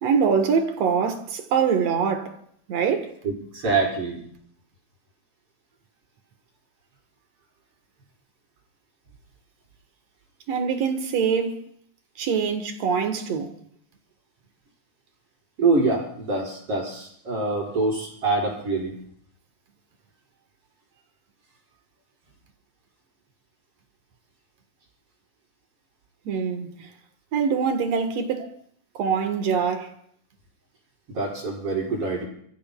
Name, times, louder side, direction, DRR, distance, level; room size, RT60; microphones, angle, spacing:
voice 1, 0.0-2.4 2.7-3.2 10.5-11.7 12.2-13.6 26.3-26.9 27.3-28.5 28.9-29.9, right 6 dB, 60° right, 2.1 m, -24 dB
voice 2, 3.2-4.2 15.6-19.0 31.1-32.3, right 3 dB, 40° right, 5.4 m, -25 dB
30.0 x 15.0 x 2.3 m
omnidirectional pair, 4.0 m